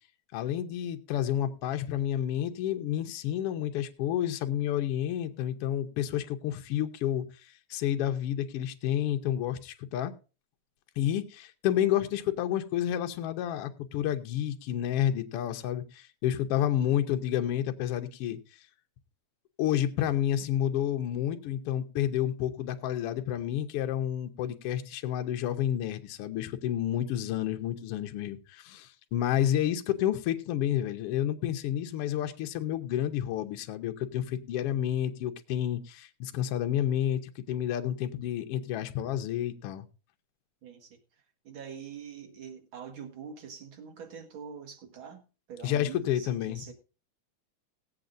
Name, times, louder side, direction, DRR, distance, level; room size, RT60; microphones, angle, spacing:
voice 1, 0.3-7.3 7.7-10.1 11.0-18.4 19.6-39.9 45.6-46.6, left 11 dB, 65° left, 1.6 m, -30 dB
voice 2, 16.6-17.0 40.6-41.0 41.4-46.7, right 7 dB, 50° right, 2.1 m, -45 dB
19.5 x 7.9 x 2.6 m
omnidirectional pair, 3.3 m